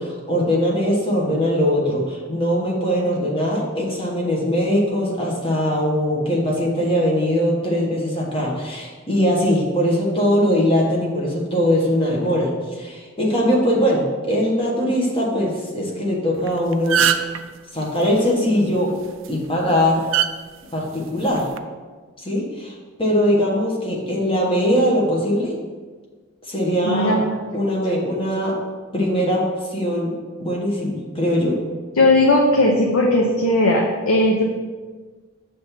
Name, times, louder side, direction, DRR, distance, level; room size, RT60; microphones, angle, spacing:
voice 1, 0.0-17.3 17.7-18.9 19.3-20.1 20.7-21.5 22.2-22.7 23.0-25.5 26.5-27.2 27.5-28.6 28.9-30.1 30.4-31.6, equal, 25° left, -3 dB, 1.3 m, -21 dB
sound 1, 16.4-16.5 16.7-17.4 19.0-19.3 20.1-20.3 21.3-21.6, right 9 dB, 70° right, 0.4 m, -19 dB
voice 2, 26.8-27.4 32.0-34.4, left 1 dB, 85° left, -1 dB, 0.8 m, -17 dB
6.6 x 3.4 x 5.8 m, 1.4 s
head